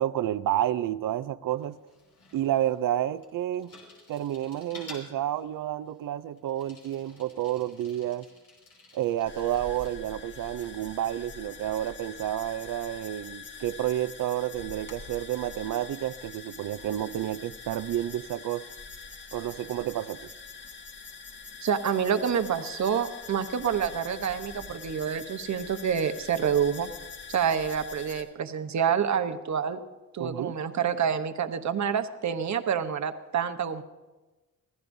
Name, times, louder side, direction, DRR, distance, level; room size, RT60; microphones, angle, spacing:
voice 1, 0.0-1.8 2.3-3.7 4.1-8.3 8.9-18.6 19.3-20.2 30.2-30.5, right 12 dB, 80° right, 12 dB, 0.6 m, -30 dB
Bicycle, 1.6-10.0, left 3 dB, 85° left, 5.3 m, -52 dB
sound 1, 9.2-28.2, left 5 dB, 35° left, 1.5 m, -44 dB
voice 2, 21.6-26.9 27.3-29.8 30.1-33.8, right 7 dB, 60° right, 9 dB, 1.0 m, -27 dB
26.0 x 15.5 x 2.7 m, 1.2 s
cardioid pair, 105°, 32 cm